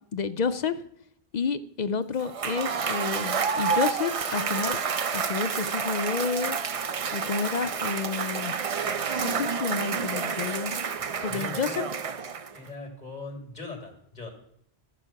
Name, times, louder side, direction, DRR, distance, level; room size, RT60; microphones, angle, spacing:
voice 1, 0.1-0.8 1.3-4.8 5.1-6.6 7.1-8.5 9.1-10.7 11.2-11.8, left 5 dB, 55° left, 12 dB, 0.5 m, -30 dB
Cheering / Applause / Crowd, 2.2-12.7, right 6 dB, 50° right, 0.4 m, -29 dB
voice 2, 11.0-11.9 12.5-14.3, left 3 dB, 40° left, 4 dB, 2.3 m, -40 dB
13.0 x 7.1 x 5.7 m, 0.72 s
omnidirectional pair, 1.2 m